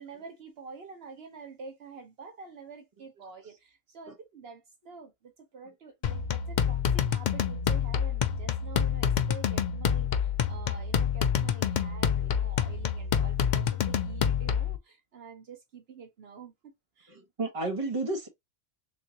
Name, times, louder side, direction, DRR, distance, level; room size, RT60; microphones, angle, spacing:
voice 1, 0.0-17.1, right 5 dB, 70° right, 1.0 m, -47 dB
sound 1, 6.0-14.8, left 8 dB, 55° left, 0.5 m, -27 dB
voice 2, 17.1-18.3, right 2 dB, 30° right, 1.1 m, -32 dB
3.6 x 3.1 x 2.7 m
omnidirectional pair, 1.1 m